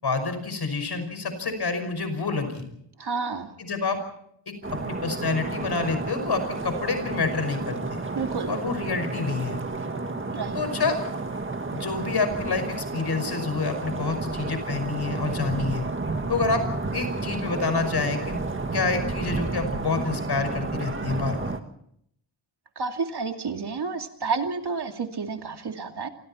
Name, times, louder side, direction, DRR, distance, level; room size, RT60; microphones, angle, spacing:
voice 1, 0.0-2.6 3.6-4.0 4.5-4.6 4.8-8.0 8.5-9.6 10.5-11.0 11.7-15.8 16.3-16.6 16.9-18.4 18.7-21.6, left 4 dB, 60° left, 8 dB, 5.6 m, -28 dB
voice 2, 3.0-3.5 8.1-8.6 10.3-10.6 22.8-26.1, right 4 dB, 60° right, 5 dB, 2.5 m, -30 dB
sound 1, 4.6-21.6, right 3 dB, 25° right, 1.9 m, -31 dB
28.5 x 26.0 x 4.4 m, 0.71 s
wide cardioid pair, 170°, 44 cm